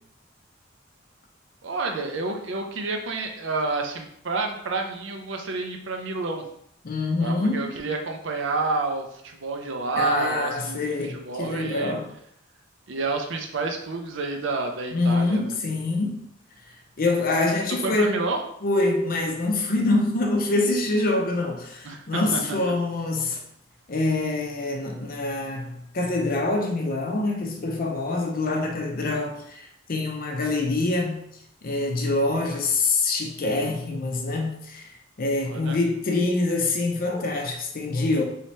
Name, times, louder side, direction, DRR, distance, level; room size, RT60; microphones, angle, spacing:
voice 1, 1.6-6.4 7.2-12.0 12.9-15.5 17.7-18.4 21.8-22.6 35.5-35.8, right 3 dB, 65° right, 3 dB, 0.5 m, -29 dB
voice 2, 6.8-7.7 10.0-12.1 14.9-16.2 17.0-18.2 18.6-23.4 23.9-31.2 31.6-34.9 35.2-38.2, left 2 dB, 50° left, 2 dB, 0.6 m, -25 dB
3.1 x 2.8 x 3.1 m, 0.70 s
head